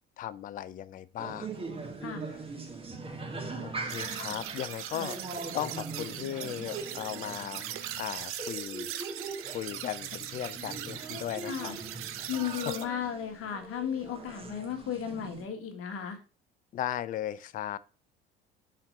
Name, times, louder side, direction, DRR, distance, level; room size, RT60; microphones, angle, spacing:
voice 1, 0.2-1.5 2.9-3.0 3.3-8.9 9.2-11.7 12.7-12.8 16.7-17.8, left 11 dB, 30° left, 0.4 m, -37 dB
sound 1, 1.2-15.5, right 3 dB, 20° right, 1.5 m, -41 dB
sound 2, 3.9-12.8, right 11 dB, 45° right, 0.8 m, -40 dB
voice 2, 11.4-11.8 12.3-16.2, left 8 dB, 45° left, 1.6 m, -35 dB
5.7 x 4.4 x 5.1 m
figure-of-eight pair, 65°, 30 cm